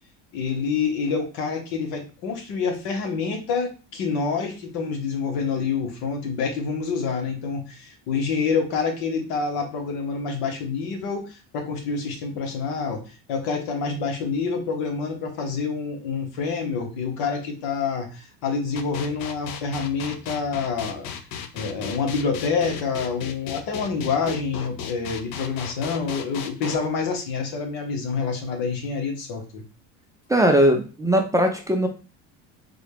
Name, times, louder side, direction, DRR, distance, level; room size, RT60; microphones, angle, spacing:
voice 1, 0.3-21.1 21.5-29.6, left 5 dB, 80° left, 3 dB, 1.2 m, -27 dB
sound 1, 18.8-26.8, left 7 dB, 60° left, 0.6 m, -35 dB
voice 2, 30.3-31.9, equal, 10° right, 2 dB, 0.4 m, -19 dB
4.0 x 2.3 x 3.3 m, 0.34 s
supercardioid pair, 110°, 39 cm